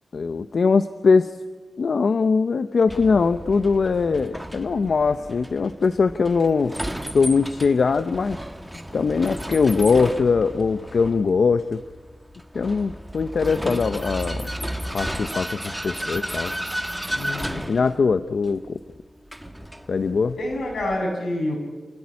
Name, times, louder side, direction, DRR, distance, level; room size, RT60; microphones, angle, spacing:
voice 1, 0.1-1.4 1.8-6.8 7.1-8.4 8.9-11.8 12.5-14.5 14.9-16.5 17.7-18.8 19.9-20.4, left 4 dB, 60° left, 11 dB, 0.7 m, -21 dB
Vehicle, 2.9-21.0, equal, 5° right, 1.5 m, -33 dB
voice 2, 17.1-17.6 20.4-21.6, left 1 dB, 90° left, 0 dB, 7.1 m, -27 dB
28.0 x 16.0 x 9.7 m, 1.4 s
wide cardioid pair, 120°, 0 cm